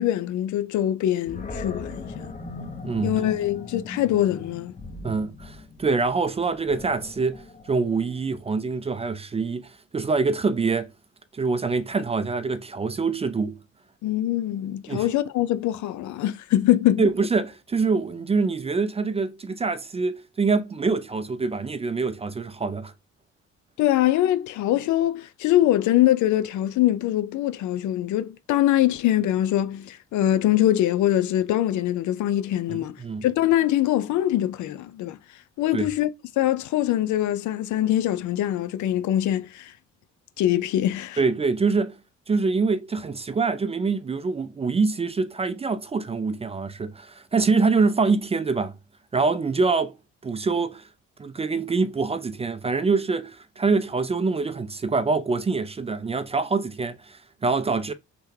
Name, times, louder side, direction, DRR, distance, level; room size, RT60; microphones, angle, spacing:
voice 1, 0.0-2.3 3.0-4.7 14.0-17.0 23.8-35.2 35.6-36.1 36.4-39.7 40.4-41.2, left 13 dB, 75° left, 0.5 m, -23 dB
Animal, 1.3-8.4, left 3 dB, 25° left, 0.8 m, -39 dB
voice 2, 2.8-3.1 5.0-10.9 11.3-13.6 14.9-15.1 17.0-22.9 32.7-33.3 35.7-35.9 41.2-42.0 42.3-48.7 49.1-50.0 50.2-50.8 51.2-57.9, right 4 dB, 20° right, 0.3 m, -25 dB
3.3 x 2.2 x 3.1 m
cardioid pair, 90°, 30 cm